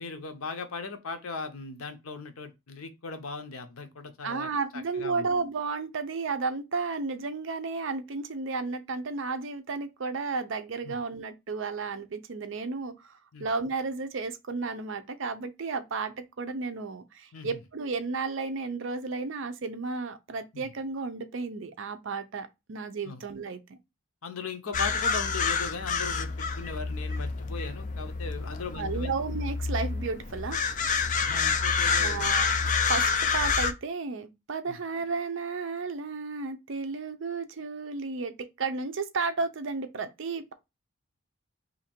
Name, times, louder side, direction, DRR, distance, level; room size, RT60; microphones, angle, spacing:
voice 1, 0.0-5.3 10.8-11.0 13.3-13.5 17.3-17.6 20.5-20.6 23.0-23.2 24.2-29.1 31.2-32.3 34.7-34.8, left 4 dB, 80° left, 0.7 m, -38 dB
voice 2, 4.2-23.8 28.7-30.6 31.8-32.5 32.9-40.5, right 4 dB, 60° right, 0.5 m, -33 dB
sound 1, 24.7-33.7, left 5 dB, 35° left, 0.3 m, -28 dB
2.8 x 2.6 x 4.3 m
head